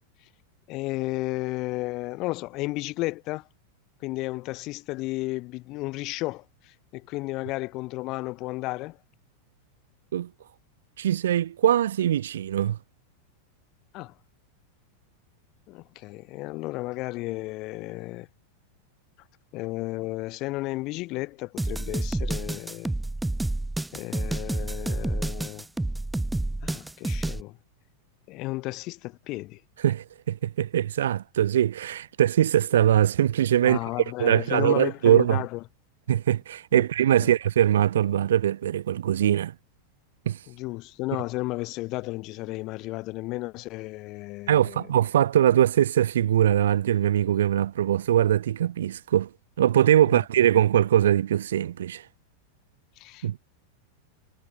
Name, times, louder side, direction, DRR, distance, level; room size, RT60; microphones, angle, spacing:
voice 1, 0.7-3.4 4.0-6.4 6.9-9.0 13.9-14.1 15.7-18.3 19.5-22.9 23.9-25.6 26.6-27.6 28.3-29.6 33.6-35.6 36.7-36.8 37.2-37.3 40.5-44.9 53.0-53.4, left 21 dB, 40° left, 1.4 m, -33 dB
voice 2, 11.0-12.8 29.8-33.8 34.2-35.4 36.1-39.5 40.3-40.4 44.5-49.3 49.6-52.0 53.2-53.4, right 11 dB, 60° right, 0.6 m, -22 dB
sound 1, 21.6-27.4, right 2 dB, 5° right, 1.4 m, -29 dB
figure-of-eight pair, 90°, 0 cm